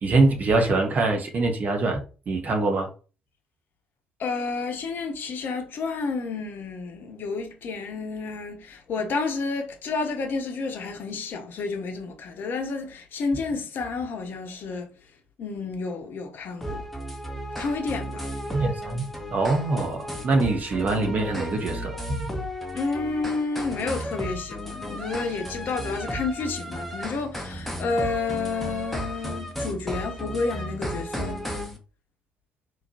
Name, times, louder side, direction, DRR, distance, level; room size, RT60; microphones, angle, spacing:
voice 1, 0.0-2.0 2.3-2.9 18.5-22.0, right 3 dB, 45° right, 1.2 m, -24 dB
voice 2, 4.2-14.9 15.4-16.9 17.6-18.3 22.7-31.4, left 4 dB, 55° left, 0.8 m, -30 dB
sound 1, 16.6-31.8, equal, 5° left, 1.1 m, -34 dB
4.2 x 3.1 x 2.7 m
figure-of-eight pair, 45°, 4 cm